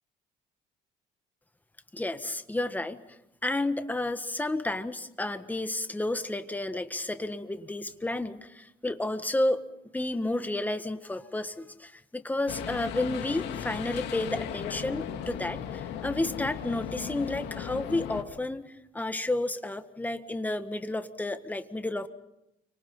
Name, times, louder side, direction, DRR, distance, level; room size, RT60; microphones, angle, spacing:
voice 1, 1.9-3.0 3.4-9.6 9.9-22.1, left 2 dB, 10° left, 9 dB, 1.5 m, -31 dB
sound 1, 12.5-18.2, left 10 dB, 80° left, 2.6 m, -36 dB
30.0 x 25.0 x 5.6 m, 0.87 s
cardioid pair, 110°, 17 cm